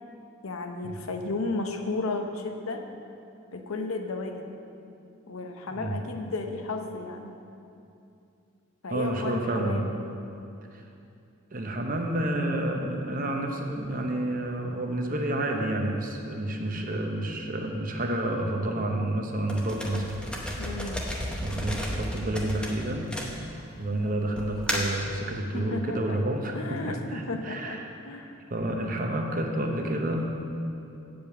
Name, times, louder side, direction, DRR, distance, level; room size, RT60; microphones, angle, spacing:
voice 1, 0.4-2.8 3.5-4.5 5.3-7.3 8.8-9.9 20.6-21.0 25.5-26.2 26.5-28.4, left 3 dB, 90° left, 4 dB, 0.8 m, -33 dB
voice 2, 8.9-9.9 10.7-10.8 11.5-20.2 21.4-23.1 23.5-27.8 28.5-30.3, right 1 dB, 40° right, 2 dB, 0.8 m, -29 dB
sound 1, 19.5-23.8 24.4-25.0, equal, 5° left, 0.8 m, -33 dB
8.8 x 5.1 x 7.1 m, 2.6 s
head